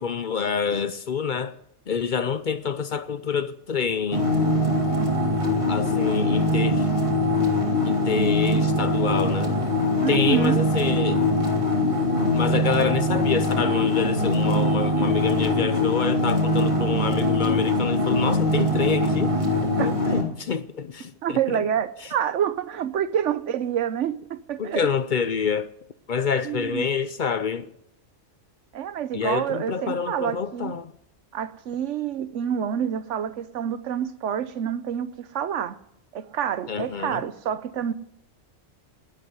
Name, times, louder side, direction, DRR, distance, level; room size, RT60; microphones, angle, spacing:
voice 1, 0.0-1.6 1.9-4.3 5.7-6.9 7.8-9.6 10.1-11.3 12.3-19.4 19.8-21.6 24.6-25.7 26.1-27.7 29.1-30.9 36.7-37.3, left 6 dB, 50° left, 0.7 m, -27 dB
sound 1, 4.1-20.2, left 1 dB, 25° right, 2.3 m, -22 dB
voice 2, 10.0-10.6 19.8-19.9 21.2-24.9 26.4-26.9 28.7-30.7 31.3-35.8 36.1-37.9, right 9 dB, 75° right, 1.1 m, -27 dB
11.5 x 11.0 x 9.5 m
omnidirectional pair, 1.3 m